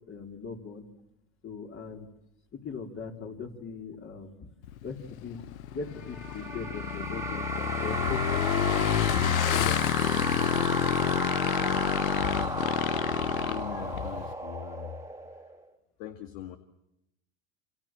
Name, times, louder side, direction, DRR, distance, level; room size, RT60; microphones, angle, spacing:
voice 1, 0.1-0.9 1.4-2.1 2.6-4.5 4.8-5.0 5.2-5.4 5.7-8.9 9.5-10.5, left 5 dB, 30° left, 3 dB, 3.9 m, -40 dB
Motorcycle / Engine, 4.6-14.3, left 11 dB, 80° left, 1.2 m, -29 dB
Alien Spaceship, 6.0-15.6, right 2 dB, 5° right, 2.5 m, -34 dB
voice 2, 13.5-15.0 16.0-16.6, left 11 dB, 60° left, 8 dB, 2.2 m, -41 dB
27.5 x 27.0 x 7.6 m, 0.83 s
supercardioid pair, 105°, 41 cm